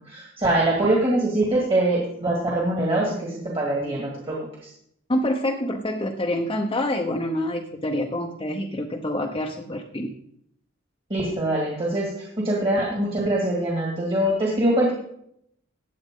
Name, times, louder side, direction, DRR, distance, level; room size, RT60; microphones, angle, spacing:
voice 1, 0.1-4.4 4.6-4.7 11.1-14.9, right 1 dB, 25° right, -3 dB, 2.1 m, -23 dB
voice 2, 5.1-10.1, left 1 dB, 25° left, 2 dB, 0.8 m, -26 dB
16.0 x 9.4 x 3.8 m, 0.73 s
head